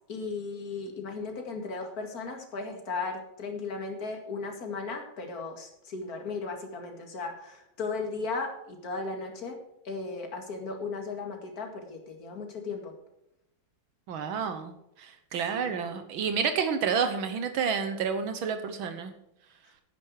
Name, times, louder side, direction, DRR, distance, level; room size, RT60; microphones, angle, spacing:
voice 1, 0.1-9.6 9.8-12.9 15.5-15.8, left 4 dB, 45° left, 2 dB, 2.6 m, -36 dB
voice 2, 14.1-14.7 15.0-19.1, right 6 dB, 75° right, 8 dB, 1.8 m, -29 dB
11.5 x 10.5 x 4.8 m, 0.81 s
omnidirectional pair, 2.2 m